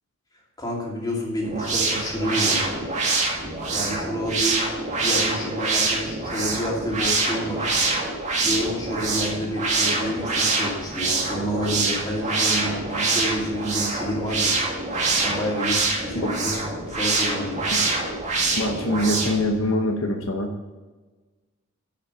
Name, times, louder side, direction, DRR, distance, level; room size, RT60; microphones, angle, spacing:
voice 1, 0.6-2.7 3.7-4.6 5.0-7.7 8.4-14.6 14.9-17.6, equal, 20° left, -3 dB, 2.6 m, -29 dB
sound 1, 1.4-19.5, right 3 dB, 30° right, 2.0 m, -25 dB
voice 2, 18.6-20.5, left 1 dB, 60° left, 3 dB, 0.9 m, -24 dB
11.0 x 5.8 x 5.3 m, 1.3 s
head